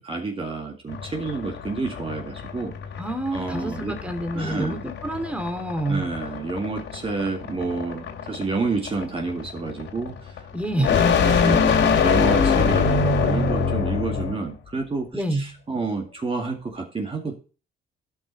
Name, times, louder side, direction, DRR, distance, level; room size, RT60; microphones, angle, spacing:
voice 1, 0.0-2.7 3.3-4.0 4.3-4.8 5.9-10.4 10.7-17.3, right 3 dB, 30° right, 1 dB, 2.0 m, -29 dB
sound 1, 0.9-14.4, left 5 dB, 70° left, 2.8 m, -24 dB
voice 2, 3.0-6.1 10.5-11.0 15.1-15.4, right 1 dB, 5° right, 6 dB, 2.4 m, -27 dB
12.0 x 5.7 x 4.1 m, 0.35 s
cardioid pair, 90°, 20 cm